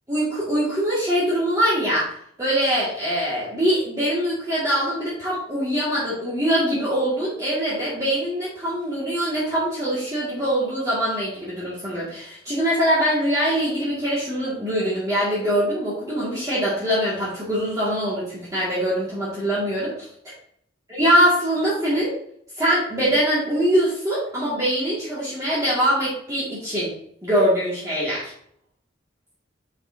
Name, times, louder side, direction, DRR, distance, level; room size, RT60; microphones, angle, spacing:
voice 1, 0.1-2.1 2.4-20.1 20.9-22.2 22.6-26.9 27.2-28.3, equal, 20° right, -9 dB, 2.0 m, -23 dB
6.7 x 5.6 x 2.7 m, 0.68 s
head